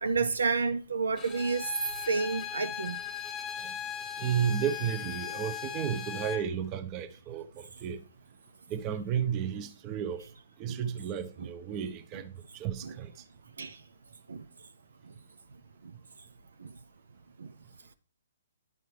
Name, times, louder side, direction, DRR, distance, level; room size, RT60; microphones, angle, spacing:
voice 1, 0.0-1.7 2.1-3.0 10.7-10.8 11.4-11.5 12.8-12.9 13.6-13.8 14.3-14.4 15.8-15.9 16.6-16.7 17.4-17.5, right 4 dB, 75° right, 0.5 m, -30 dB
Bowed string instrument, 1.2-6.5, left 9 dB, 15° left, 0.8 m, -38 dB
voice 2, 4.2-8.0 8.7-10.2 10.6-13.2, right 8 dB, 30° right, 0.7 m, -33 dB
10.5 x 5.4 x 3.3 m
figure-of-eight pair, 130°, 0 cm